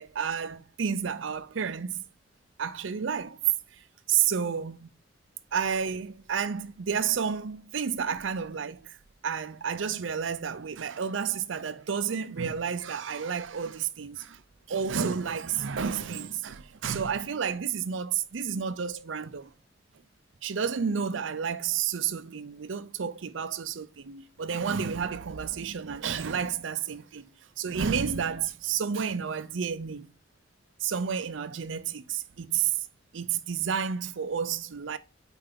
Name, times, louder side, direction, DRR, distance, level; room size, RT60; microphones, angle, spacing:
voice 1, 0.0-2.0 2.6-3.4 4.1-4.8 5.5-9.0 9.2-14.4 14.7-19.5 20.4-27.3 27.6-30.1 30.8-32.8 33.1-35.0, right 7 dB, 85° right, 0.6 m, -31 dB
6.7 x 4.6 x 3.8 m
head